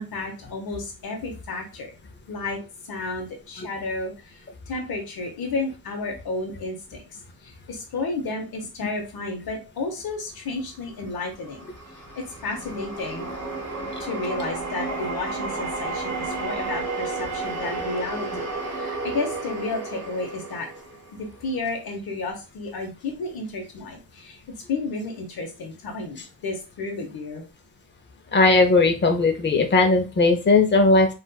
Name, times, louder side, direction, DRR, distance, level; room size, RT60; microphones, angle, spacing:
voice 1, 0.0-1.9 2.3-2.6 2.8-7.0 7.4-13.3 14.0-18.5 18.7-20.7 21.2-24.4 24.7-27.4, left 3 dB, 65° left, 2 dB, 0.9 m, -32 dB
sound 1, 11.1-21.5, right 3 dB, 40° right, 1.8 m, -32 dB
voice 2, 28.3-31.1, left 3 dB, 30° left, 5 dB, 0.6 m, -18 dB
4.0 x 2.4 x 2.2 m, 0.31 s
wide cardioid pair, 140°, 39 cm